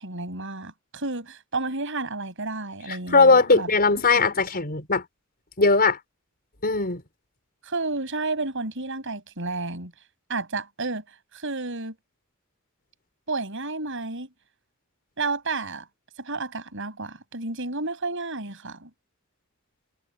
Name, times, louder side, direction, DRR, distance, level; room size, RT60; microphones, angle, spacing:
voice 1, 0.0-3.7 4.1-4.3 7.6-9.9 10.3-11.0 11.3-12.0 13.3-14.3 15.2-15.9 16.2-18.9, right 3 dB, 65° right, 7.2 m, -31 dB
voice 2, 3.1-5.0 5.6-6.0 6.6-7.0, left 3 dB, 45° left, 5.1 m, -19 dB
head